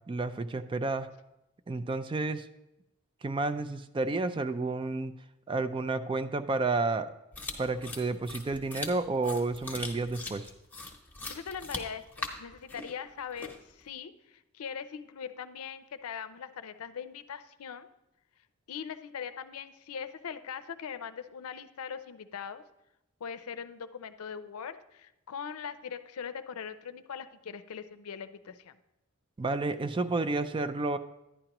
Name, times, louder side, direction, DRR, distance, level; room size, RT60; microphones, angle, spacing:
voice 1, 0.1-1.1 1.7-2.5 3.2-5.1 5.5-7.1 7.6-10.5 29.4-31.0, right 3 dB, 25° right, 11 dB, 0.3 m, -31 dB
sound 1, 7.3-13.8, left 3 dB, 10° left, 1.0 m, -41 dB
voice 2, 11.3-17.9 18.7-22.6 23.2-28.8, left 7 dB, 90° left, 11 dB, 0.5 m, -41 dB
11.0 x 10.0 x 2.9 m, 0.90 s
head